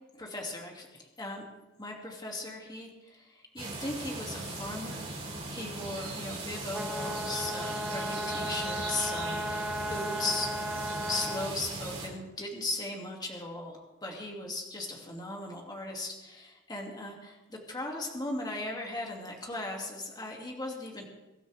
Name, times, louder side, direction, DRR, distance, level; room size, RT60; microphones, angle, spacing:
voice 1, 0.1-1.4 1.8-5.0 5.5-10.8 11.1-21.1, left 2 dB, 20° left, 0 dB, 2.5 m, -38 dB
sound 1, 3.6-12.1, right 2 dB, 30° right, 5.3 m, -39 dB
sound 2, 6.7-11.6, equal, 5° right, 0.9 m, -35 dB
23.0 x 12.5 x 3.5 m, 1.1 s
head